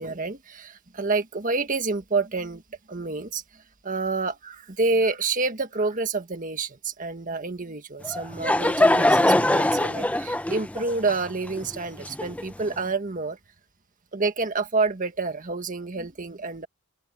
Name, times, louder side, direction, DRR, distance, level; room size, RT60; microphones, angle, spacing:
voice 1, 0.0-2.6 2.9-13.4 14.1-16.7, right 3 dB, 40° right, 1.6 m, -28 dB
Laughter / Crowd, 8.0-12.7, left 1 dB, 5° left, 0.8 m, -22 dB
open air
head